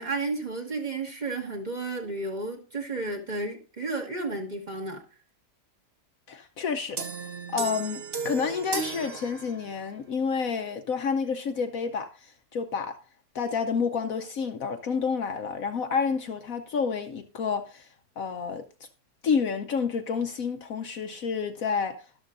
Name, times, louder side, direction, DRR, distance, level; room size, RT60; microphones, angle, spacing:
voice 1, 0.0-5.0, right 3 dB, 25° right, 2.0 m, -32 dB
voice 2, 6.3-7.1 7.5-13.0 13.3-17.9 18.2-18.6 19.2-22.1, left 6 dB, 60° left, 1.1 m, -29 dB
sound 1, 7.0-10.0, right 6 dB, 45° right, 1.0 m, -35 dB
12.5 x 12.0 x 2.6 m
omnidirectional pair, 1.8 m